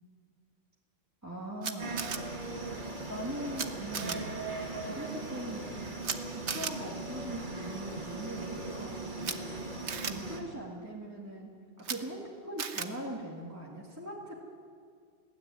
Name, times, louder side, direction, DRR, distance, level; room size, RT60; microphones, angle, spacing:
voice 1, 1.2-2.1 3.1-4.3 4.8-5.8 6.3-14.5, right 1 dB, 15° right, -3 dB, 2.0 m, -41 dB
Camera, 1.6-2.2 3.6-3.7 3.9-4.2 6.0-6.2 6.5-6.7 9.2-9.3 9.9-10.1 11.8-12.0 12.6-12.9, right 6 dB, 70° right, 1.4 m, -34 dB
sound 1, 1.8-10.4, right 2 dB, 40° right, 2.2 m, -39 dB
19.5 x 16.5 x 9.6 m, 2.1 s
omnidirectional pair, 1.2 m